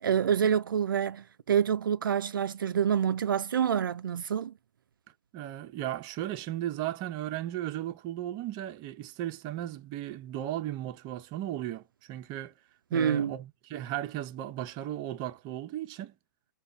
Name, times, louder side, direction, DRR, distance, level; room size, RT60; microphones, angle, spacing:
voice 1, 0.0-4.5 12.9-13.3, right 8 dB, 85° right, 0.4 m, -27 dB
voice 2, 5.3-12.5 12.9-16.1, right 13 dB, 40° right, 0.8 m, -36 dB
5.2 x 2.4 x 3.5 m
hypercardioid pair, 120°, 11 cm